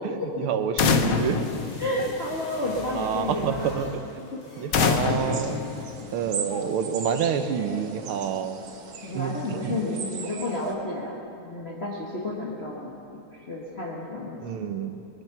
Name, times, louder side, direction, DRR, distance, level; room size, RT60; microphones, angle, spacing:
voice 1, 0.0-1.4 2.0-2.1 2.9-4.3 4.6-5.6 6.1-8.6 9.1-9.8 14.4-14.9, right 8 dB, 85° right, 9 dB, 1.7 m, -28 dB
sound 1, 0.8-2.6 4.7-6.5, left 7 dB, 60° left, 0.9 m, -26 dB
sound 2, 1.1-6.2 6.5-6.6, left 1 dB, 85° left, 3.5 m, -43 dB
voice 2, 1.8-3.8 4.3-4.4 4.8-5.2 9.0-11.1 11.4-12.9 13.3-14.4, left 2 dB, 30° left, -5 dB, 1.6 m, -31 dB
sound 3, 4.8-10.7, right 5 dB, 55° right, 1.4 m, -38 dB
21.5 x 11.0 x 6.0 m, 2.7 s
omnidirectional pair, 2.3 m